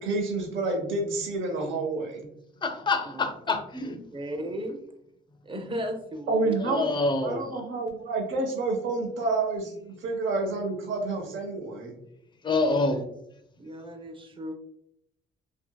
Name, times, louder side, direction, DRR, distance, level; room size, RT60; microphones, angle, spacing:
voice 1, 0.0-2.3 6.3-6.9 7.2-11.9, right 3 dB, 75° right, 1 dB, 0.7 m, -29 dB
voice 2, 2.6-4.0 6.6-7.6 12.4-13.0, left 3 dB, 25° left, 6 dB, 0.4 m, -27 dB
voice 3, 4.1-4.8 5.4-6.5 12.7-12.8 13.6-14.5, equal, 25° right, 4 dB, 0.6 m, -35 dB
2.7 x 2.7 x 2.2 m, 0.76 s
cardioid pair, 90°, 20 cm